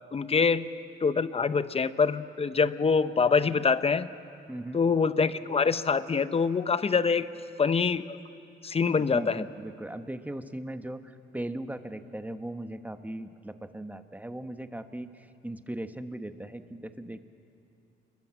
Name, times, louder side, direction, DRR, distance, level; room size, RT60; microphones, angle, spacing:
voice 1, 0.1-0.7 1.0-4.1 4.7-7.3 7.6-8.2 8.6-9.5, left 5 dB, 30° left, 13 dB, 0.8 m, -25 dB
voice 2, 4.5-4.8 9.1-17.2, right 1 dB, 10° right, 8 dB, 1.2 m, -38 dB
27.5 x 21.5 x 7.7 m, 2.6 s
cardioid pair, 90°, 20 cm